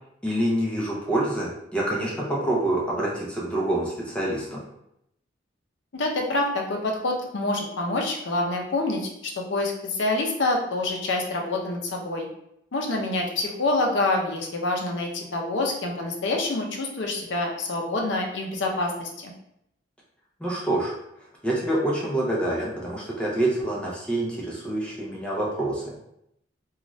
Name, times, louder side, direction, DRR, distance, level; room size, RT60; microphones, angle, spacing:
voice 1, 0.2-4.6 20.4-20.9 21.4-25.9, right 1 dB, 5° left, -5 dB, 0.6 m, -26 dB
voice 2, 5.9-12.3 12.7-19.3, left 2 dB, 75° left, 1 dB, 0.6 m, -27 dB
2.6 x 2.3 x 3.0 m, 0.78 s
head